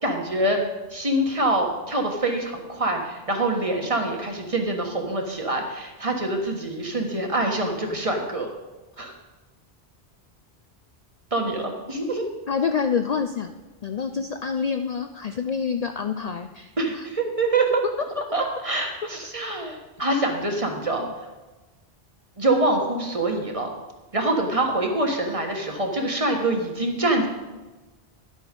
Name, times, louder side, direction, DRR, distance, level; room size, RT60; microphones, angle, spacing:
voice 1, 0.0-0.6 0.9-8.5 9.0-9.1 11.3-12.3 16.8-17.8 18.1-21.0 22.4-23.7 24.1-27.3, right 2 dB, 35° right, 2 dB, 1.4 m, -25 dB
voice 2, 12.5-13.5 13.8-17.1 21.0-21.1, left 6 dB, 50° left, 7 dB, 0.5 m, -27 dB
11.0 x 8.3 x 5.2 m, 1.2 s
omnidirectional pair, 1.0 m